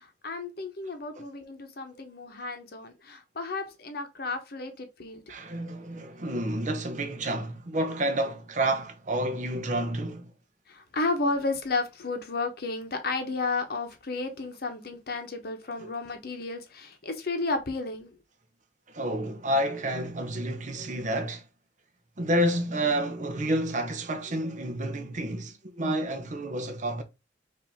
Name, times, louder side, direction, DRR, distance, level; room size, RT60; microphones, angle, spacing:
voice 1, 0.0-5.2 10.7-18.2, left 3 dB, 60° left, 0.9 m, -32 dB
voice 2, 5.3-10.3 15.8-15.9 18.9-21.4 22.2-27.0, right 1 dB, 45° right, 0.8 m, -29 dB
5.3 x 2.7 x 3.4 m
head